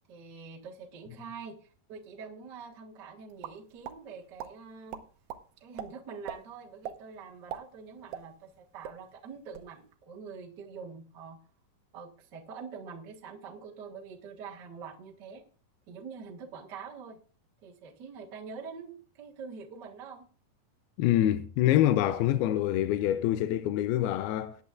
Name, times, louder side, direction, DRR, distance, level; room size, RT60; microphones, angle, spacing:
voice 1, 0.1-1.6 1.9-5.0 5.6-11.4 11.9-15.4 15.9-17.2 17.6-20.3, right 5 dB, 55° right, 1.1 m, -45 dB
sound 1, 3.4-4.0 4.4-4.5 4.9-5.4 5.8-5.9 6.3-6.4 6.8-7.0 7.3-8.6 8.8-9.0 9.4-9.7, right 9 dB, 75° right, 2.4 m, -39 dB
voice 2, 21.0-24.6, left 13 dB, 80° left, 2.6 m, -25 dB
19.5 x 9.4 x 2.5 m
omnidirectional pair, 4.5 m